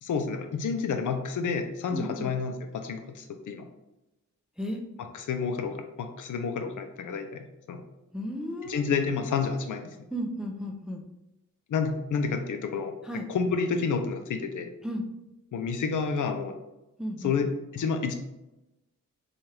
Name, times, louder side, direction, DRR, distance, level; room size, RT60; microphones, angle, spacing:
voice 1, 0.0-3.6 5.1-7.8 8.6-9.9 11.7-12.9 13.3-14.7 15.5-16.5 17.2-18.1, left 5 dB, 75° left, 7 dB, 0.5 m, -29 dB
voice 2, 1.9-2.3 4.6-4.8 8.1-8.9 10.1-11.0 13.0-13.3 14.8-15.1 17.0-17.4, equal, ahead, 2 dB, 0.4 m, -34 dB
4.3 x 2.4 x 3.2 m, 0.94 s
wide cardioid pair, 120°, 31 cm